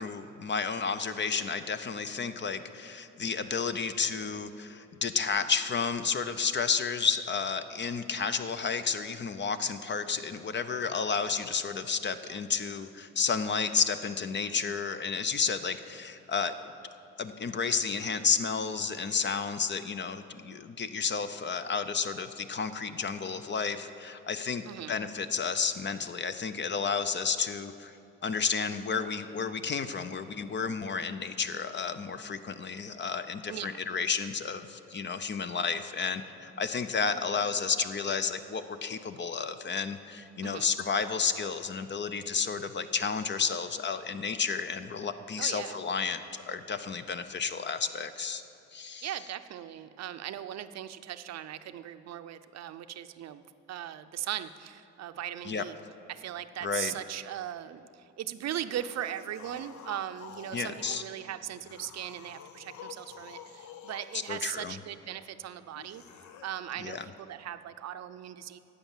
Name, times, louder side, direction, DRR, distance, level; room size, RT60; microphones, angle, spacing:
voice 1, 0.0-16.5 17.2-27.9 28.2-48.4 48.7-49.1 55.4-55.6 56.6-56.9 60.5-61.0 64.3-64.8 66.8-67.0, left 5 dB, 35° left, 10 dB, 0.6 m, -31 dB
voice 2, 45.4-45.8 49.0-53.4 53.7-55.8 56.1-66.0 66.4-68.6, right 11 dB, 60° right, 11 dB, 0.6 m, -39 dB
sound 1, 58.6-61.1 61.5-64.2 65.7-66.6, left 7 dB, 75° left, 0.8 m, -49 dB
11.5 x 8.2 x 7.3 m, 2.7 s
cardioid pair, 90°, 30 cm